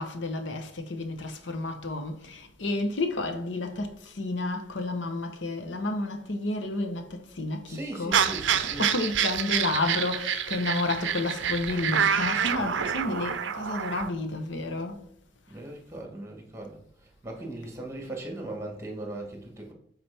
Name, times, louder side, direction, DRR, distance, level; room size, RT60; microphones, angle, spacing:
voice 1, 0.0-8.2 8.6-15.1, left 2 dB, 75° left, 0.9 m, -31 dB
voice 2, 7.6-8.9 15.5-19.7, right 1 dB, 15° right, 1.2 m, -39 dB
sound 1, 8.1-14.1, right 8 dB, 75° right, 0.5 m, -27 dB
7.0 x 4.1 x 3.4 m
head